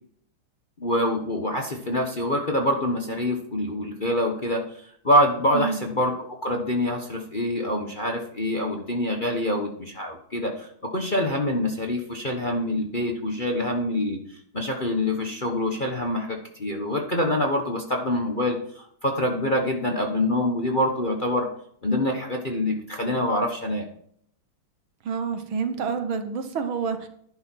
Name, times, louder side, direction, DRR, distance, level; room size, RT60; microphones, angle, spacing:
voice 1, 0.8-4.6 5.0-14.2 14.5-21.5 21.8-23.8, left 1 dB, 30° left, 2 dB, 1.1 m, -25 dB
voice 2, 25.1-27.1, right 6 dB, 75° right, 8 dB, 2.1 m, -28 dB
11.0 x 10.5 x 4.5 m, 0.67 s
omnidirectional pair, 2.3 m